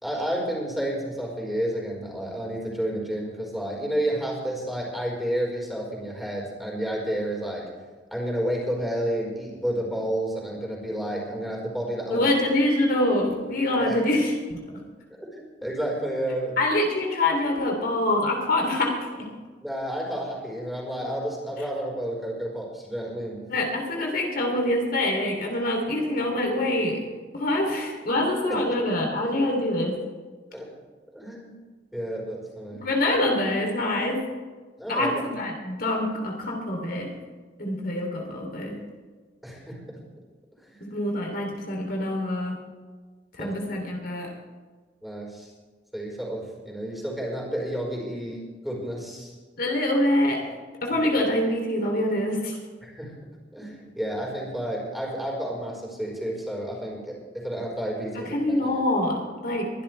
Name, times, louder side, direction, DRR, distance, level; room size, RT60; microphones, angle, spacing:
voice 1, 0.0-7.6 8.1-12.3 13.8-14.0 15.2-16.6 19.6-23.5 28.5-28.6 30.5-30.7 31.1-31.6 31.9-32.9 34.8-35.2 39.4-40.0 40.7-40.8 43.4-43.5 45.0-45.5 45.9-49.3 52.8-53.1 53.5-58.9, right 1 dB, ahead, -3 dB, 4.6 m, -31 dB
voice 2, 12.1-14.6 16.6-19.3 23.5-27.0 27.3-29.9 32.7-34.2 34.9-37.1 37.6-38.8 40.8-42.6 43.4-44.3 49.6-50.5 50.8-52.6 58.1-59.7, left 1 dB, 55° left, 0 dB, 3.1 m, -25 dB
23.0 x 12.5 x 3.4 m, 1.4 s
head